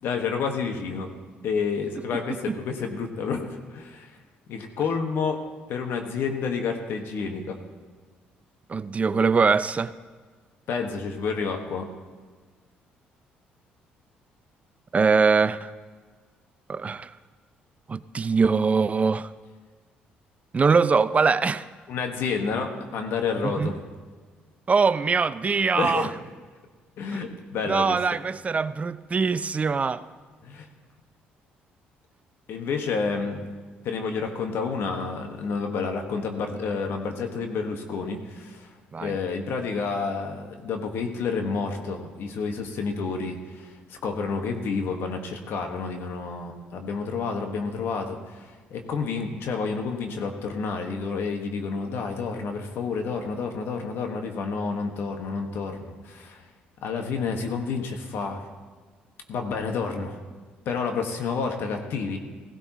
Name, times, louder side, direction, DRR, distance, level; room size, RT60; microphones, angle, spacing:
voice 1, 0.0-1.1 1.4-4.1 4.5-5.4 5.7-7.6 10.7-11.9 21.9-23.8 25.7-26.1 27.0-28.0 30.4-30.7 32.5-33.5 33.8-38.7 39.0-56.4 56.8-58.5 59.3-60.2 60.6-62.2, left 5 dB, 70° left, 1.6 m, -29 dB
voice 2, 8.7-9.9 14.9-15.7 16.7-17.1 17.9-19.3 20.5-21.6 23.4-23.7 24.7-26.1 27.1-27.2 27.7-30.0 38.9-39.1, right 5 dB, 35° right, 0.5 m, -22 dB
16.5 x 16.0 x 3.1 m
supercardioid pair, 65°, 4 cm